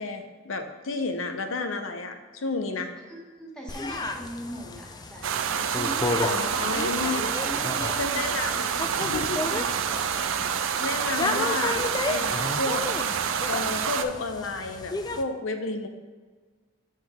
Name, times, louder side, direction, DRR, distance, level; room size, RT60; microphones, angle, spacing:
voice 1, 0.0-2.9 6.2-7.3 8.0-8.7 9.0-9.5 10.8-12.9 13.4-15.9, left 3 dB, 85° left, 7 dB, 0.7 m, -31 dB
voice 2, 3.1-5.2 5.7-10.2, equal, 5° left, -2 dB, 1.2 m, -41 dB
sound 1, 3.7-15.2, left 3 dB, 20° left, 0.4 m, -33 dB
sound 2, 5.2-14.0, right 7 dB, 75° right, 0.4 m, -28 dB
7.3 x 5.7 x 3.5 m, 1.4 s
head